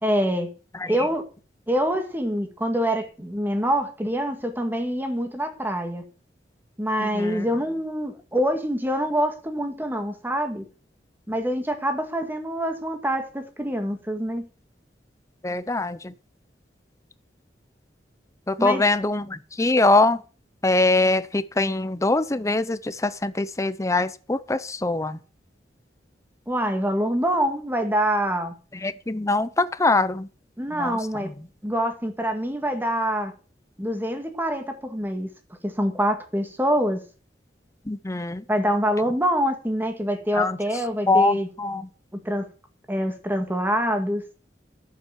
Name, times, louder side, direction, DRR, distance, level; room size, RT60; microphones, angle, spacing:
voice 1, 0.0-0.5 0.9-1.2 1.7-6.0 6.8-10.7 11.3-14.5 18.6-18.8 26.5-28.5 30.6-31.3 31.6-33.3 33.8-35.3 35.6-37.0 38.5-41.5 42.3-42.4 42.9-44.2, equal, 10° right, 2.1 m, -25 dB
voice 2, 7.0-7.4 15.4-16.1 18.5-20.2 20.6-25.2 28.8-30.3 30.7-31.3 37.9-38.4 40.3-40.6 41.1-41.9, left 2 dB, 20° left, 0.6 m, -23 dB
11.5 x 7.7 x 7.3 m
head